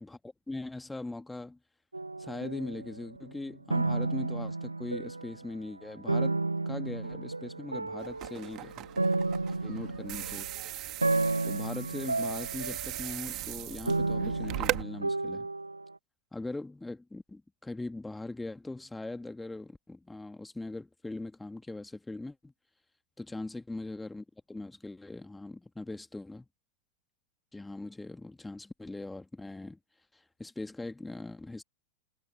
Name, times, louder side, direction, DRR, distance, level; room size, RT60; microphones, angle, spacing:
voice 1, 0.0-1.6 2.2-8.8 9.6-10.5 11.4-15.5 16.3-22.5 23.2-26.5 27.5-29.8 30.1-31.6, left 2 dB, 5° left, 2.4 m, -41 dB
sound 1, 1.9-3.4 3.7-5.5 6.1-15.9, right 3 dB, 80° right, 1.2 m, -32 dB
sound 2, 8.0-14.8, right 16 dB, 35° right, 2.1 m, -38 dB
figure-of-eight pair, 90°, 0 cm